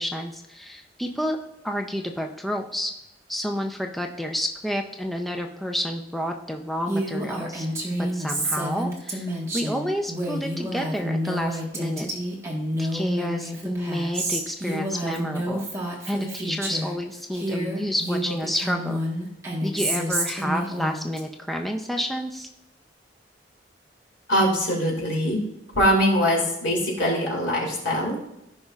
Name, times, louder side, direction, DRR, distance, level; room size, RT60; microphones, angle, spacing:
voice 1, 0.0-1.4 1.6-2.9 3.3-7.7 8.0-9.3 9.5-12.1 12.8-15.7 16.1-19.0 19.6-22.5, equal, ahead, 2 dB, 0.5 m, -29 dB
Female speech woman speaking, 6.9-17.0 17.3-21.2, right 1 dB, 15° right, 1.4 m, -29 dB
voice 2, 24.3-25.4 25.7-28.2, equal, 80° left, -2 dB, 2.9 m, -22 dB
15.5 x 5.4 x 2.4 m, 0.84 s
head